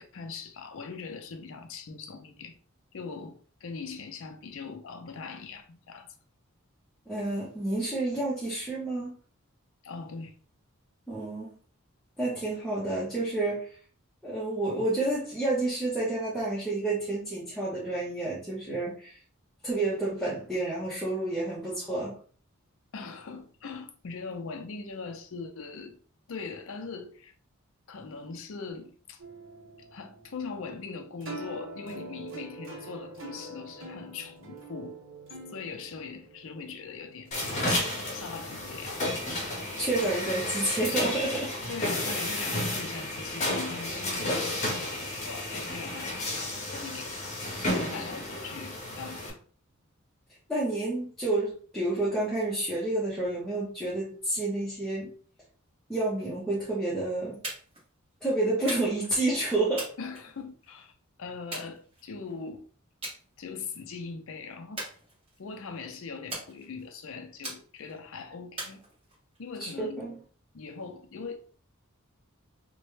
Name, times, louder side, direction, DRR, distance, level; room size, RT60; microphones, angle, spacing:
voice 1, 0.0-2.6 2.9-6.1 9.8-10.3 22.9-26.0 26.3-27.3 27.9-29.2 29.9-35.0 35.5-39.2 41.7-47.4 47.7-49.4 60.0-60.9 61.2-62.7 63.4-64.9 65.4-68.8 69.4-70.1 70.5-71.5, left 4 dB, 65° left, 0.5 m, -41 dB
voice 2, 7.1-9.1 11.1-11.5 12.2-13.7 14.2-19.2 19.6-22.2 39.8-41.5 50.5-55.1 55.9-57.4 58.2-59.9 69.6-70.1, right 2 dB, ahead, 0.7 m, -29 dB
sound 1, 29.2-43.2, right 2 dB, 60° right, 0.8 m, -46 dB
sound 2, 37.3-49.3, left 1 dB, 35° left, 0.8 m, -32 dB
sound 3, 57.4-57.9 58.7-59.1 59.8-60.7 61.5-62.3 63.0-63.2 63.6-64.0 64.8-65.5 66.3-66.9 67.4-68.0 68.6-69.4, right 1 dB, 25° right, 1.3 m, -40 dB
3.0 x 2.2 x 3.2 m
head